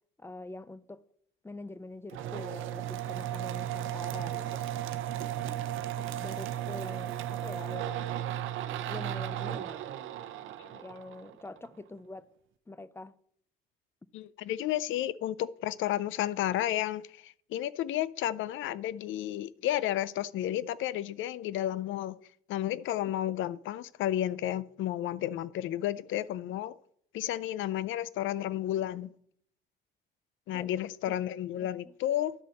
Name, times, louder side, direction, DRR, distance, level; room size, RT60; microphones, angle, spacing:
voice 1, 0.2-1.1 1.4-4.6 5.9-8.1 8.9-9.8 10.8-12.3 12.7-13.2 30.5-30.7 31.1-31.2 31.6-31.9, left 2 dB, 10° left, 0.4 m, -44 dB
sound 1, 2.1-11.7, right 11 dB, 85° right, 0.6 m, -35 dB
voice 2, 14.1-22.1 22.5-26.8 27.1-29.1 30.5-32.3, left 12 dB, 80° left, 0.4 m, -32 dB
11.0 x 4.1 x 6.4 m
cardioid pair, 90°, 20 cm